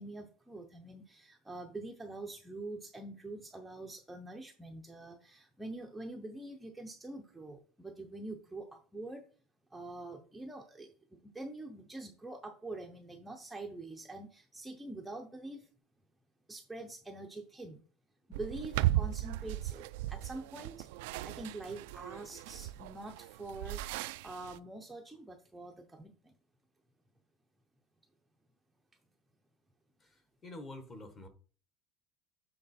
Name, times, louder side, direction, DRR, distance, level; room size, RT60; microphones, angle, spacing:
voice 1, 0.0-9.2 9.7-10.9 11.2-15.6 16.5-17.8 18.3-19.8 20.1-20.8 21.2-23.8 24.2-26.1, right 2 dB, 5° right, 1 dB, 0.6 m, -45 dB
sound 1, 18.3-24.6, right 15 dB, 85° right, 0.3 m, -36 dB
voice 2, 30.0-31.3, left 2 dB, 20° left, 8 dB, 1.0 m, -48 dB
7.9 x 3.8 x 4.1 m, 0.41 s
cardioid pair, 175°, 0 cm